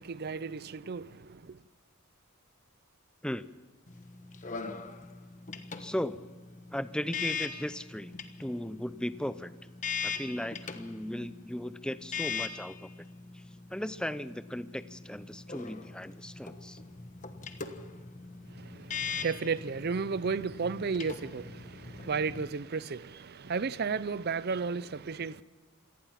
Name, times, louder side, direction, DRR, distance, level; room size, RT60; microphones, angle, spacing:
voice 1, 0.0-1.6 18.5-25.4, right 5 dB, 45° right, 0.5 m, -34 dB
sound 1, 3.9-22.4, left 5 dB, 35° left, 1.2 m, -41 dB
voice 2, 5.8-6.2 6.7-8.1 8.4-9.5 10.0-12.9 13.3-13.4 13.7-16.8, left 1 dB, 5° left, 0.6 m, -36 dB
27.5 x 18.0 x 5.9 m
head